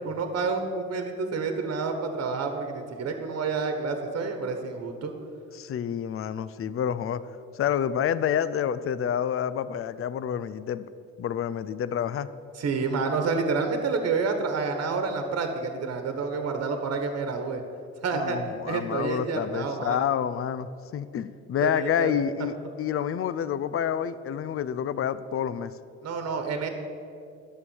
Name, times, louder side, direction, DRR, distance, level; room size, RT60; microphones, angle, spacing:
voice 1, 0.0-5.1 12.6-17.6 18.0-18.4 18.6-20.1 21.6-22.1 26.0-26.7, right 4 dB, 55° right, 6 dB, 1.3 m, -29 dB
voice 2, 5.5-7.2 7.5-10.8 11.2-12.3 18.1-25.7, left 9 dB, 50° left, 15 dB, 0.5 m, -28 dB
11.0 x 6.5 x 7.1 m, 2.5 s
cardioid pair, 90°, 30 cm